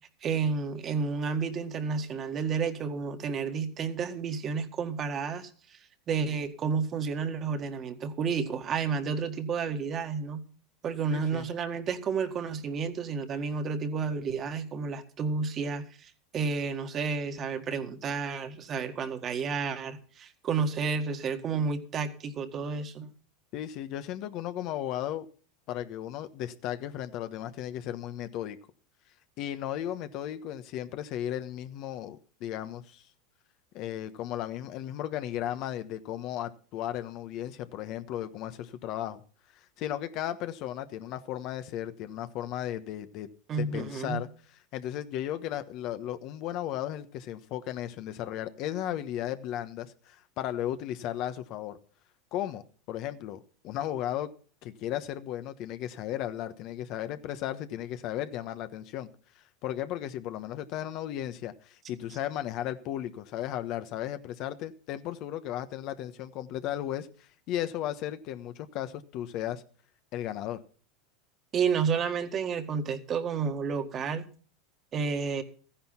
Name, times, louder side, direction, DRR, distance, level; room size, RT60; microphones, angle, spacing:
voice 1, 0.2-5.8 6.1-10.5 10.8-23.1 43.5-44.2 71.5-74.2 74.9-75.4, right 5 dB, 35° right, 7 dB, 1.8 m, -31 dB
voice 2, 11.1-11.5 23.5-25.3 25.7-28.6 29.4-33.0 33.7-39.2 39.8-43.3 43.6-44.3 44.7-51.8 52.3-52.6 52.9-53.4 53.6-54.3 54.6-59.1 59.6-67.1 67.5-69.6 70.1-70.6, left 12 dB, 50° left, 10 dB, 1.2 m, -35 dB
14.5 x 10.5 x 5.8 m, 0.42 s
supercardioid pair, 110°, 0 cm